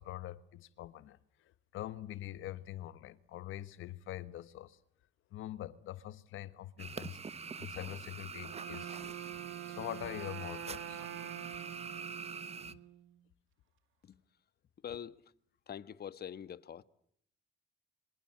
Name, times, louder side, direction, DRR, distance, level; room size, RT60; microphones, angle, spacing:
voice 1, 0.0-4.8 5.3-9.2 9.6-11.0 12.6-12.8, left 13 dB, 85° left, 1.4 m, -44 dB
sound 1, 6.8-12.7, right 5 dB, 30° right, 1.0 m, -45 dB
Wind instrument woodwind instrument, 8.3-13.2, right 11 dB, 85° right, 2.6 m, -46 dB
voice 2, 14.8-15.3 15.7-16.8, left 9 dB, 55° left, 1.4 m, -44 dB
26.5 x 25.5 x 7.6 m
cardioid pair, 90°, 20 cm